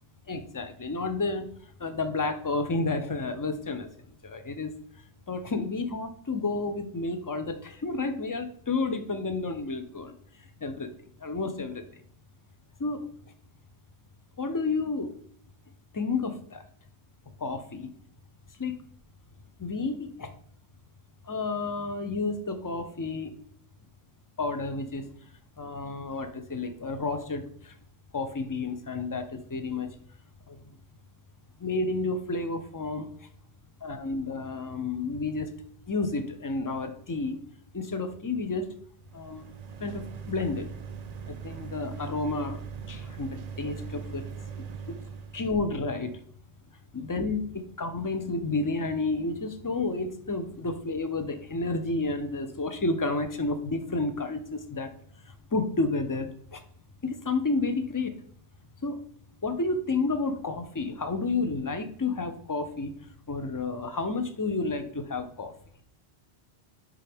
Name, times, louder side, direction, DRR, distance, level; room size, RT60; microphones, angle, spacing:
voice 1, 0.3-1.5 1.8-3.9 4.2-4.7 5.3-10.1 10.6-10.9 11.2-11.8 12.8-13.1 14.4-15.1 15.9-16.6 17.4-17.9 18.6-18.8 19.6-20.3 21.2-23.3 24.4-25.1 25.6-27.7 28.1-30.0 30.5-30.6 31.6-33.1 33.8-35.5 35.9-37.4 37.7-38.7 39.1-39.5 39.8-40.7 41.3-42.6 42.9-44.3 45.3-46.1 46.9-54.9 55.2-56.6 57.0-58.2 58.8-59.0 59.4-62.9 63.3-65.5, left 3 dB, 25° left, 8 dB, 0.5 m, -31 dB
sound 1, 39.0-45.6, right 6 dB, 50° right, 0.5 m, -40 dB
10.0 x 3.8 x 3.5 m, 0.63 s
omnidirectional pair, 1.1 m